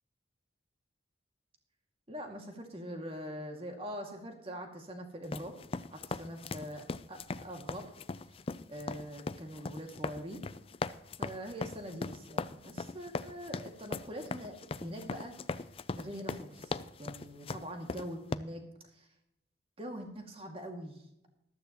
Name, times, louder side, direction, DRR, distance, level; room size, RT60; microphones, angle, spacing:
voice 1, 2.1-5.5 5.9-7.9 8.7-10.4 11.2-15.3 15.9-18.6 18.9-19.1 19.8-21.3, equal, 30° right, 3 dB, 2.2 m, -43 dB
sound 1, 5.2-18.4, left 3 dB, 30° left, 0.4 m, -39 dB
14.5 x 12.5 x 3.0 m, 0.80 s
head